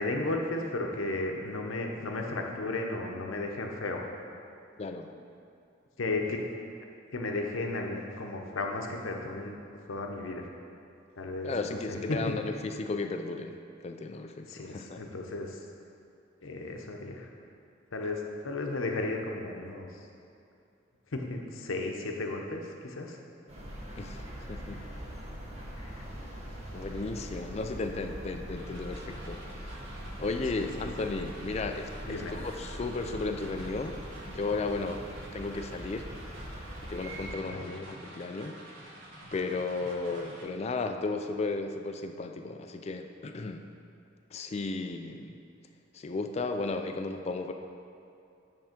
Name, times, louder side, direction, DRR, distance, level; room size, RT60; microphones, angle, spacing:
voice 1, 0.0-4.0 6.0-6.5 7.1-9.6 9.9-10.5 11.2-12.4 14.5-15.6 16.4-17.3 17.9-19.9 21.1-23.2 25.8-26.1 30.6-31.1 32.0-32.3 37.4-37.8, left 2 dB, 85° left, 2 dB, 0.8 m, -34 dB
voice 2, 4.8-5.1 11.4-15.0 23.9-24.2 24.5-24.8 26.7-29.7 30.2-34.0 34.3-35.0 35.3-36.1 36.9-38.6 39.3-43.7 44.3-45.4 45.9-47.5, left 3 dB, 30° left, 6 dB, 0.4 m, -34 dB
sound 1, 23.5-37.3, equal, 30° right, 1.0 m, -42 dB
sound 2, 28.6-40.4, right 1 dB, 80° right, 1.4 m, -48 dB
8.8 x 3.5 x 5.1 m, 2.6 s
head